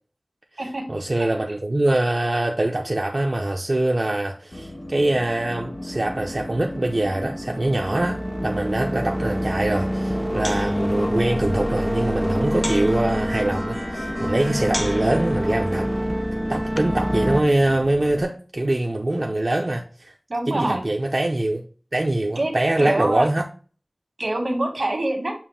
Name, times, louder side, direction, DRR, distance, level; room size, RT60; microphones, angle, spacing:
voice 1, 0.9-15.9 16.5-20.1 20.5-21.6 21.9-23.4, right 1 dB, 60° right, 0.6 m, -23 dB
sound 1, 4.5-18.2, left 1 dB, 60° left, 1.3 m, -35 dB
sound 2, 5.5-17.4, equal, 5° right, 0.4 m, -27 dB
sound 3, 9.5-17.1, left 1 dB, 35° left, 0.7 m, -39 dB
voice 2, 20.3-20.8 22.4-23.3 24.2-25.3, right 1 dB, 90° right, 1.7 m, -25 dB
7.2 x 2.5 x 5.6 m
wide cardioid pair, 50°, 0 cm